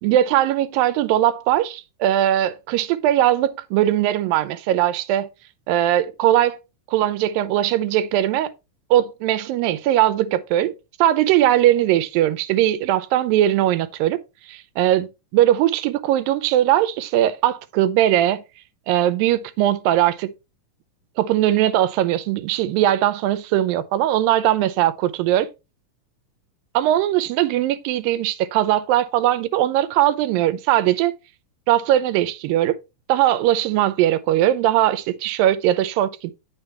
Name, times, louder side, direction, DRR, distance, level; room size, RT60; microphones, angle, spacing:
voice 1, 0.0-5.3 5.7-6.6 6.9-8.5 8.9-10.7 11.0-14.2 14.5-18.4 18.9-20.3 21.2-25.5 26.7-31.1 31.7-32.8 33.1-36.3, right 12 dB, 85° right, 2.5 m, -20 dB
9.8 x 6.1 x 3.3 m
omnidirectional pair, 4.0 m